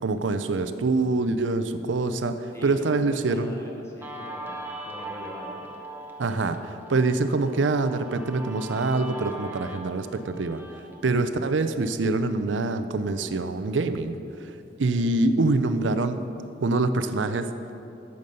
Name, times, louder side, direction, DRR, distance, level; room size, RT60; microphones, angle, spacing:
voice 1, 0.0-3.6 6.2-10.6 11.0-14.5 14.8-16.2 16.6-17.5, right 3 dB, 90° right, 10 dB, 0.6 m, -25 dB
voice 2, 2.5-5.7 14.9-15.3, equal, 15° left, 0 dB, 1.3 m, -43 dB
Guitar, 4.0-11.0, right 1 dB, 10° right, 0.8 m, -40 dB
12.0 x 8.0 x 5.3 m, 2.8 s
head